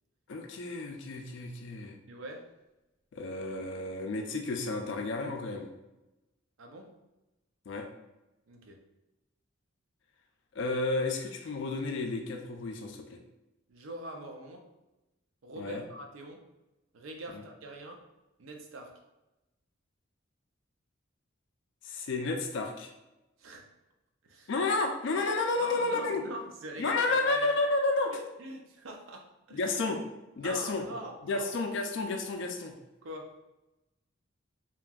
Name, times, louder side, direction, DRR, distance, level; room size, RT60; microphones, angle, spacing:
voice 1, 0.3-2.0 3.1-5.7 7.7-7.9 10.5-13.2 15.6-15.8 17.3-17.4 21.8-22.9 24.5-26.2 26.8-28.2 29.5-30.0 30.4-30.9 31.2-32.7, left 3 dB, 60° left, 3 dB, 0.4 m, -31 dB
voice 2, 2.1-2.5 6.6-7.0 8.5-8.9 13.7-14.7 15.4-16.5 16.9-18.1 18.4-19.0 23.4-23.7 24.2-24.5 25.6-27.6 28.0-29.6 30.4-31.5 33.0-33.4, right 1 dB, 75° right, 3 dB, 0.5 m, -44 dB
2.8 x 2.5 x 2.3 m, 0.98 s
head